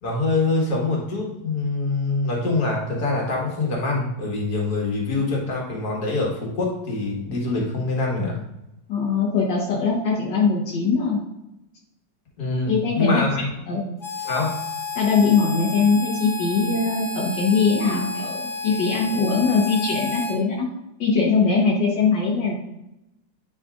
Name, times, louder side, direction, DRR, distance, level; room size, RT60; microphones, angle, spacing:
voice 1, 0.0-8.4 12.4-13.5 14.2-14.5, left 3 dB, 60° left, -2 dB, 2.1 m, -24 dB
voice 2, 8.9-11.2 12.7-13.2 13.7-13.8 14.9-20.7 21.0-22.6, left 4 dB, 80° left, -4 dB, 1.8 m, -21 dB
Harmonica, 14.0-20.3, left 4 dB, 30° left, 0.5 m, -31 dB
10.0 x 4.1 x 2.5 m, 0.89 s
omnidirectional pair, 1.9 m